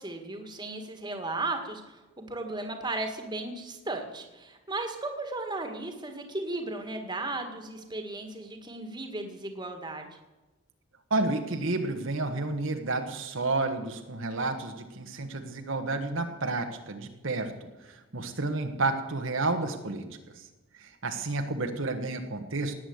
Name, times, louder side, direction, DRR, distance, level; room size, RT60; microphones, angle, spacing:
voice 1, 0.0-10.1, right 2 dB, 20° right, 5 dB, 1.8 m, -35 dB
voice 2, 11.1-20.1 20.4-20.5 20.8-22.7, right 2 dB, 65° right, 5 dB, 1.3 m, -31 dB
18.0 x 9.1 x 8.0 m, 1.1 s
head